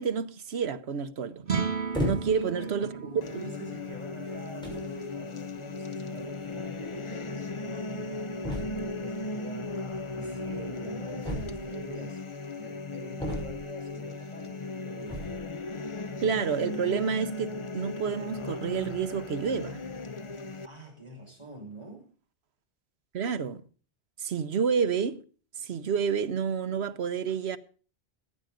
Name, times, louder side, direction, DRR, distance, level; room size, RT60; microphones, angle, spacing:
voice 1, 0.0-1.4 2.0-2.9 16.2-19.8 23.1-23.6 24.2-25.2 25.6-27.6, right 6 dB, 75° right, 1.1 m, -29 dB
sound 1, 1.4-7.8, right 6 dB, 55° right, 1.6 m, -37 dB
sound 2, 1.9-2.5 3.3-3.5 4.3-4.4 4.6-4.9 6.2-6.3 6.5-6.6 6.8-6.9 8.4-9.0 11.2-11.9 13.2-13.8 15.0-15.5, equal, 5° left, 6.9 m, -34 dB
voice 2, 2.3-9.7 10.1-14.5 14.8-15.2 20.6-22.1, right 2 dB, 25° right, 6.2 m, -45 dB
sound 3, 3.2-20.7, left 3 dB, 35° left, 0.6 m, -37 dB
15.5 x 10.5 x 5.1 m
omnidirectional pair, 1.1 m